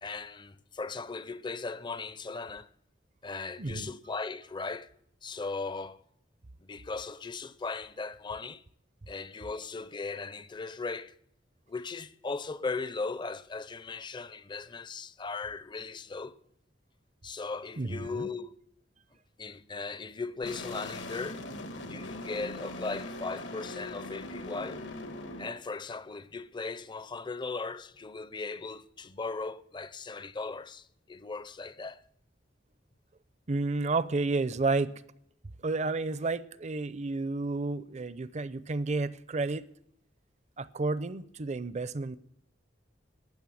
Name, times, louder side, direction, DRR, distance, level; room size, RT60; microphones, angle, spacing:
voice 1, 0.0-2.7 3.2-4.9 5.2-6.0 6.6-8.6 9.1-11.2 11.7-16.4 17.2-18.5 19.4-21.4 21.9-24.8 25.4-32.0, left 4 dB, 25° left, 0.5 m, -38 dB
voice 2, 3.6-3.9 17.8-18.5 33.5-34.9 35.6-39.6 40.6-42.2, right 3 dB, 40° right, 0.6 m, -31 dB
sound 1, 20.4-25.5, left 2 dB, 80° left, 1.4 m, -40 dB
13.0 x 9.1 x 7.7 m
head